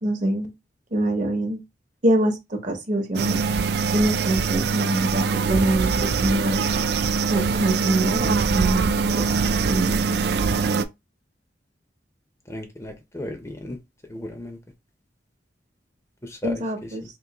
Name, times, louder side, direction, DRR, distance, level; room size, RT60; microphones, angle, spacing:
voice 1, 0.0-0.5 0.9-1.6 2.0-3.4 3.9-6.6 7.3-10.2 16.4-17.0, right 1 dB, 45° right, 0.8 m, -24 dB
sound 1, 3.1-10.8, right 5 dB, 60° right, 0.3 m, -23 dB
voice 2, 12.5-13.8 14.1-14.6 16.2-16.5, left 1 dB, 15° left, 0.5 m, -35 dB
3.8 x 2.6 x 2.9 m
head